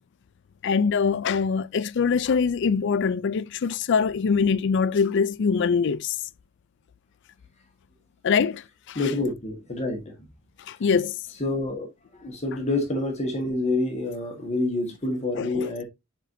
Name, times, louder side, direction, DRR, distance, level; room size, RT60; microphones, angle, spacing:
voice 1, 0.6-6.2 8.2-9.0 10.7-11.2 15.4-15.7, left 5 dB, 60° left, 0.4 m, -23 dB
voice 2, 9.0-10.1 11.4-11.9 12.1-15.8, left 2 dB, 35° left, 1.6 m, -27 dB
8.3 x 4.5 x 2.7 m
head